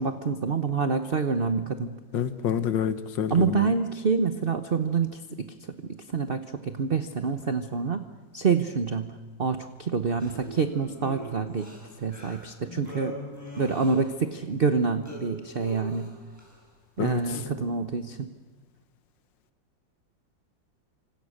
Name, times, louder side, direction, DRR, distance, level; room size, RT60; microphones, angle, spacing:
voice 1, 0.0-1.9 3.3-5.5 5.8-8.1 8.3-11.7 12.0-13.2 13.6-16.2 17.0-18.3, right 5 dB, 40° right, 9 dB, 0.9 m, -27 dB
voice 2, 2.1-3.7 17.0-17.4, left 8 dB, 70° left, 12 dB, 1.9 m, -28 dB
sound 1, 10.2-14.3 14.7-16.6 17.1-17.5, equal, 10° left, 6.6 m, -42 dB
28.5 x 26.0 x 6.6 m, 1.3 s
omnidirectional pair, 2.1 m